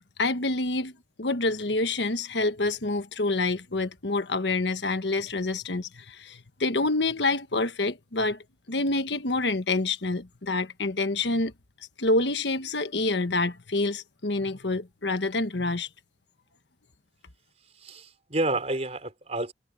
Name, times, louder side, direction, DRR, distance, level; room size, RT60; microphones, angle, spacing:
voice 1, 0.2-0.9 1.2-8.4 8.7-11.5 12.0-15.9, left 2 dB, 85° left, 1.4 m, -27 dB
voice 2, 17.8-19.5, right 2 dB, 40° right, 4.5 m, -29 dB
head